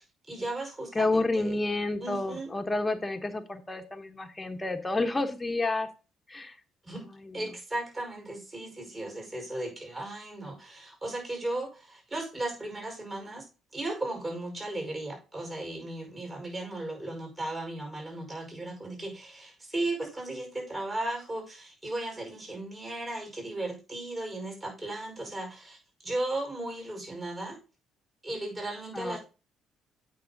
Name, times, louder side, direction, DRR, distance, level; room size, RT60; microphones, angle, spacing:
voice 1, 0.0-1.6 2.0-2.5 6.8-7.1 7.3-13.5 13.7-25.8 26.0-27.6 28.2-29.2, right 2 dB, 25° right, 1 dB, 5.4 m, -36 dB
voice 2, 0.9-5.9 6.3-6.5 7.2-7.4 28.9-29.2, left 2 dB, 20° left, 7 dB, 1.2 m, -30 dB
8.5 x 5.7 x 4.0 m, 0.32 s
supercardioid pair, 70°, 0 cm